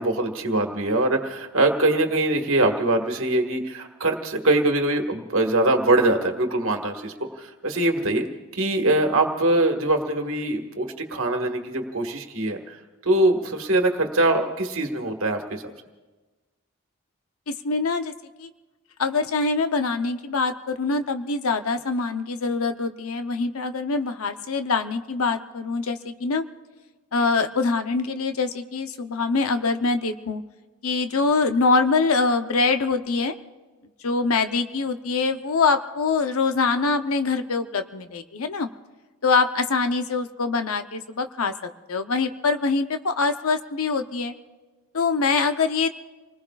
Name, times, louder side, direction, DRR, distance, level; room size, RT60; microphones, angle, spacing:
voice 1, 0.0-8.3 8.5-15.6, right 2 dB, 70° right, 4 dB, 1.7 m, -23 dB
voice 2, 17.5-18.1 18.4-18.5 19.0-26.4 27.1-30.4 30.8-33.3 34.0-38.7 39.2-44.3 44.9-45.9, left 4 dB, 80° left, 8 dB, 0.8 m, -24 dB
29.0 x 20.0 x 2.4 m, 1.2 s
head